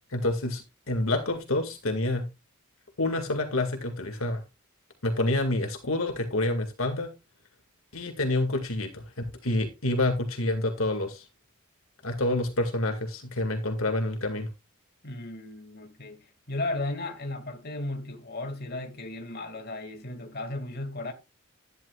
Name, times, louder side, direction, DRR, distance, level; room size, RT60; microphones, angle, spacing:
voice 1, 0.1-2.3 3.0-4.4 5.0-7.1 7.9-11.3 12.0-14.5, left 2 dB, 65° left, 2.1 m, -28 dB
voice 2, 15.0-21.1, left 2 dB, 45° left, 2.3 m, -35 dB
11.5 x 10.5 x 2.4 m
head